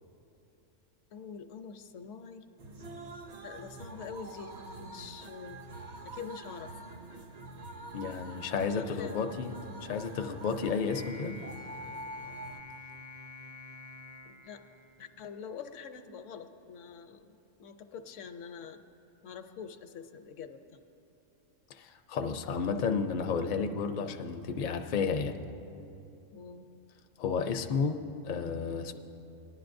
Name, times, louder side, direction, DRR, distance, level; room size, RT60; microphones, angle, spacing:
voice 1, 1.1-2.4 3.4-5.6 6.0-6.9 8.6-9.3 14.3-14.6 15.0-18.8 19.2-20.8 26.3-26.7, left 6 dB, 75° left, 8 dB, 0.9 m, -45 dB
sound 1, 2.6-12.6, right 2 dB, 50° right, 0.5 m, -45 dB
voice 2, 7.9-9.5 9.8-11.3 21.7-25.4 27.2-28.9, left 5 dB, 55° left, 5 dB, 0.5 m, -32 dB
sound 2, 10.9-15.4, left 2 dB, 65° right, 1.4 m, -48 dB
19.0 x 10.5 x 2.6 m, 2.7 s
omnidirectional pair, 1.3 m